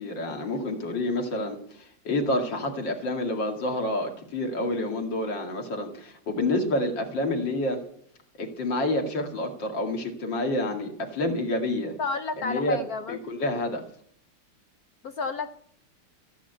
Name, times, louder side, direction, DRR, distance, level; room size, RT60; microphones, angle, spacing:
voice 1, 0.0-7.8 8.4-12.0 12.4-12.8 13.1-13.8, left 1 dB, 55° left, 3 dB, 2.9 m, -28 dB
voice 2, 12.0-13.2 15.0-15.5, left 4 dB, 70° left, 9 dB, 0.8 m, -31 dB
14.0 x 10.0 x 8.2 m, 0.63 s
omnidirectional pair, 2.4 m